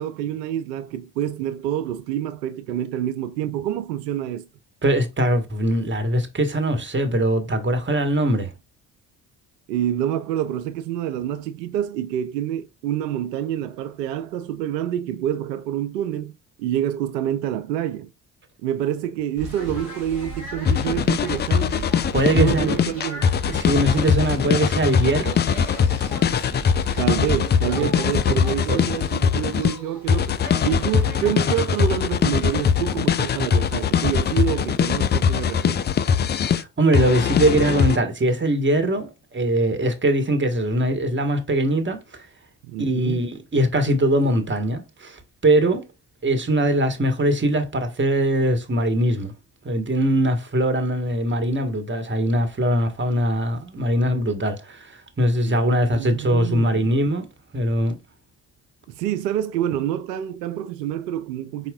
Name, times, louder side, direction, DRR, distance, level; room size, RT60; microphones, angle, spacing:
voice 1, 0.0-4.5 9.7-16.3 16.6-18.1 18.6-21.9 22.3-23.3 27.0-35.9 42.6-43.2 55.4-56.9 58.9-61.7, right 11 dB, 85° right, 0.6 m, -27 dB
voice 2, 4.8-8.5 22.1-22.9 23.5-25.4 27.8-27.9 28.3-28.4 28.7-28.8 36.5-42.3 42.8-45.8 46.2-49.3 49.6-57.3 57.5-58.0, right 1 dB, 25° right, 1.4 m, -21 dB
sound 1, 19.4-31.6, right 1 dB, 85° left, 2.1 m, -37 dB
sound 2, 20.6-29.8 30.1-36.6 36.9-38.0, left 7 dB, 25° left, 0.3 m, -21 dB
4.8 x 4.2 x 2.3 m
hypercardioid pair, 45°, 48 cm